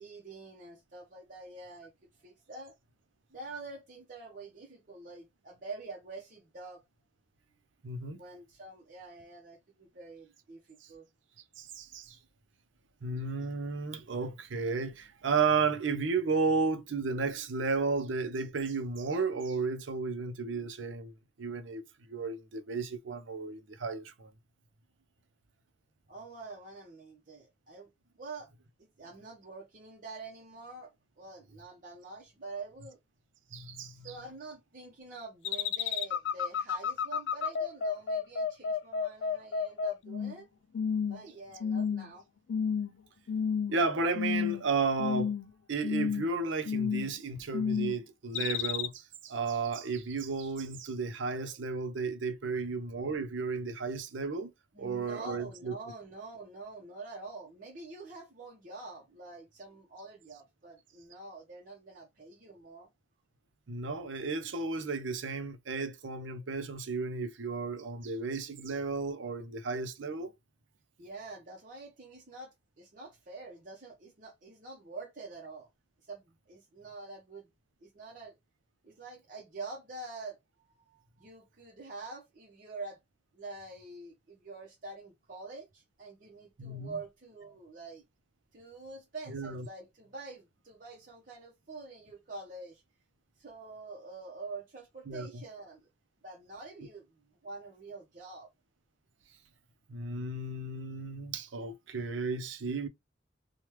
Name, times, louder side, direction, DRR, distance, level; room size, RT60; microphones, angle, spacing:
voice 1, 0.0-1.9 2.2-2.7 3.3-6.8 8.1-11.1 26.1-27.9 28.2-28.5 28.8-33.0 34.0-40.5 41.1-42.2 54.7-62.9 71.0-75.7 76.1-77.5 77.8-78.3 78.8-80.4 80.7-83.0 83.3-88.0 88.5-92.8 93.4-95.9 96.2-98.5, right 3 dB, 45° right, 0.8 m, -46 dB
voice 2, 7.8-8.2 10.8-10.9 11.6-12.2 13.0-21.8 22.1-24.3 33.5-34.1 43.7-45.3 45.7-54.5 54.8-55.7 63.7-70.3 86.6-86.9 89.3-89.7 95.1-95.4 99.9-102.9, right 4 dB, 85° right, 0.6 m, -33 dB
sound 1, 35.4-40.4 40.7-41.2 41.6-42.1 42.5-42.9 43.3-43.8 44.1-44.7 45.0-45.5 45.8-46.3 46.6-47.2 47.5-48.0 48.3-48.9, left 6 dB, 65° left, 0.3 m, -31 dB
3.1 x 2.3 x 3.0 m
head